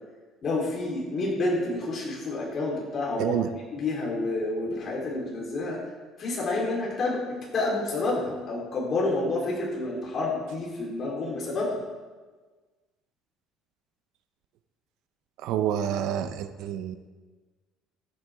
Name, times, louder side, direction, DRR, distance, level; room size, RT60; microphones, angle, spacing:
voice 1, 0.4-3.4 3.7-5.8 6.2-7.2 7.5-11.8, left 2 dB, 35° left, -4 dB, 3.7 m, -29 dB
voice 2, 3.2-3.5 15.4-17.0, right 10 dB, 65° right, 10 dB, 0.7 m, -28 dB
14.0 x 9.4 x 3.6 m, 1.3 s
cardioid pair, 160°, 0 cm